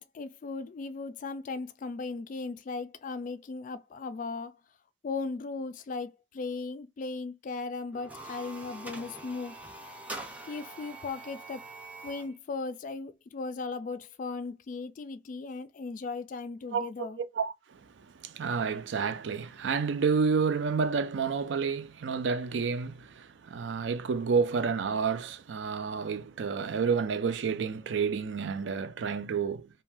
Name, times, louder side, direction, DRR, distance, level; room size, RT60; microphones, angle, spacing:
voice 1, 0.0-4.6 5.0-9.6 10.5-11.6 12.0-17.2, left 4 dB, 45° left, 0.3 m, -37 dB
sound 1, 7.9-12.3, right 2 dB, 10° right, 0.5 m, -44 dB
voice 2, 17.2-29.7, right 5 dB, 75° right, 0.4 m, -30 dB
2.5 x 2.2 x 3.3 m
head